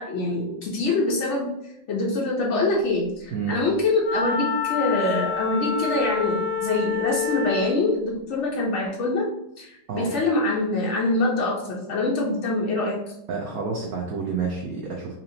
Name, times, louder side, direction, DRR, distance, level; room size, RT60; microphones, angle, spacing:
voice 1, 0.0-1.5 1.9-9.3 9.6-13.0, left 2 dB, 80° left, -3 dB, 0.6 m, -24 dB
Wind instrument woodwind instrument, 4.0-7.8, left 5 dB, 65° left, 1.1 m, -27 dB
voice 2, 13.3-15.1, right 5 dB, 75° right, -1 dB, 0.8 m, -29 dB
4.1 x 2.8 x 2.7 m, 0.82 s
omnidirectional pair, 2.1 m